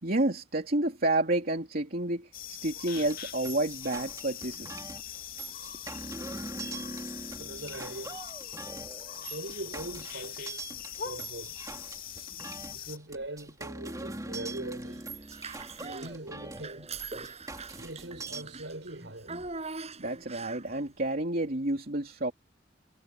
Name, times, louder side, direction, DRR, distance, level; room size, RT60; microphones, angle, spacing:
voice 1, 0.0-4.9 20.0-22.3, right 1 dB, 55° right, 3.2 m, -30 dB
sound 1, 2.3-13.0, left 9 dB, 55° left, 2.5 m, -42 dB
sound 2, 2.9-18.4, right 2 dB, 20° right, 2.9 m, -42 dB
voice 2, 7.4-8.2 9.3-10.7 11.0-11.6 12.7-15.1 15.8-16.9 17.7-19.3, right 2 dB, 85° right, 5.7 m, -41 dB
Child speech kid speaking / Bathtub (filling or washing), 15.2-16.1 16.5-20.8, right 3 dB, 35° right, 6.9 m, -42 dB
head